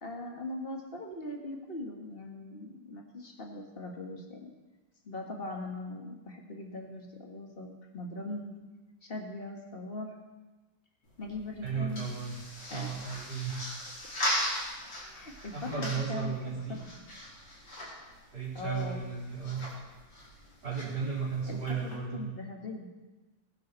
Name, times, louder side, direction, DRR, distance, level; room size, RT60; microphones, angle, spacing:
voice 1, 0.0-4.5 5.0-8.7 9.0-10.1 11.2-12.1 12.7-13.0 14.8-16.8 18.5-19.0 21.5-22.9, left 2 dB, 35° left, 1 dB, 1.9 m, -40 dB
sound 1, 11.0-22.0, left 1 dB, 75° left, 4.4 m, -39 dB
voice 2, 11.6-12.4 12.7-13.7 15.5-16.8 18.3-19.6 20.6-22.3, right 5 dB, 70° right, -5 dB, 4.3 m, -35 dB
20.5 x 10.5 x 4.1 m, 1.2 s
omnidirectional pair, 1.9 m